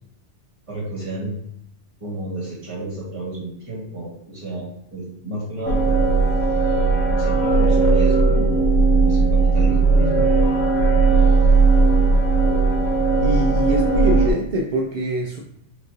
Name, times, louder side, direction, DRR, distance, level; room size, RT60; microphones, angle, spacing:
voice 1, 0.7-1.4 2.0-6.0 7.0-8.8 9.0-10.3, right 1 dB, 30° right, -6 dB, 1.5 m, -31 dB
sound 1, 5.7-14.3, right 3 dB, 70° left, 0.8 m, -17 dB
voice 2, 13.2-15.4, equal, 55° right, -1 dB, 0.5 m, -23 dB
4.6 x 2.4 x 3.0 m, 0.73 s
omnidirectional pair, 1.2 m